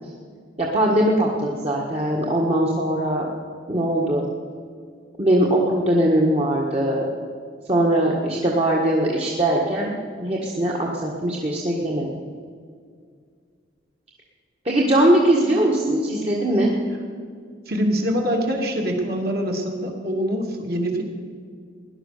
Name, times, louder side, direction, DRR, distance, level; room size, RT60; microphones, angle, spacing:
voice 1, 0.6-3.3 3.7-4.2 5.2-7.1 7.7-9.9 10.2-12.1 14.6-16.7, right 1 dB, 35° right, -3 dB, 1.6 m, -20 dB
voice 2, 17.7-21.0, equal, 55° right, 1 dB, 2.5 m, -24 dB
18.0 x 11.0 x 6.7 m, 2.1 s
head